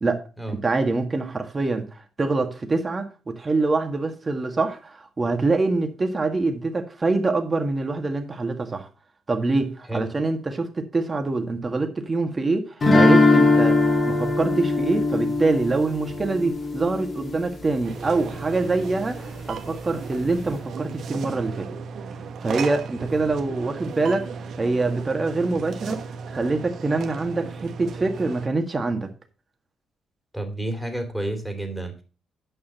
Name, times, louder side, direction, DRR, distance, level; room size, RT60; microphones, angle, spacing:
voice 1, 0.5-1.9 2.2-8.9 9.3-13.8 14.1-21.7 22.4-24.3 24.6-26.0 26.3-29.1, right 3 dB, 30° right, 1.8 m, -25 dB
sound 1, 12.8-17.7, left 2 dB, 40° left, 3.6 m, -20 dB
sound 2, 17.8-28.5, right 5 dB, 65° right, 1.3 m, -35 dB
voice 2, 30.3-32.0, right 1 dB, ahead, 2.8 m, -30 dB
9.3 x 5.6 x 5.6 m
cardioid pair, 90°, 0 cm